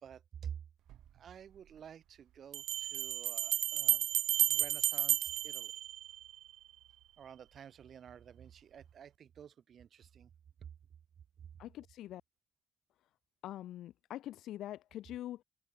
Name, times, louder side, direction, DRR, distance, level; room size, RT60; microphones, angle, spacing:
voice 1, 0.0-0.6 1.1-4.1 4.5-5.7 7.2-10.3 10.6-10.7, right 8 dB, 50° right, 3.9 m, -50 dB
Bell, 0.9-1.0 2.5-6.5, right 13 dB, 80° right, 0.4 m, -32 dB
voice 2, 11.6-12.2 13.4-15.4, left 13 dB, 85° left, 0.5 m, -44 dB
cardioid pair, 155°, 0 cm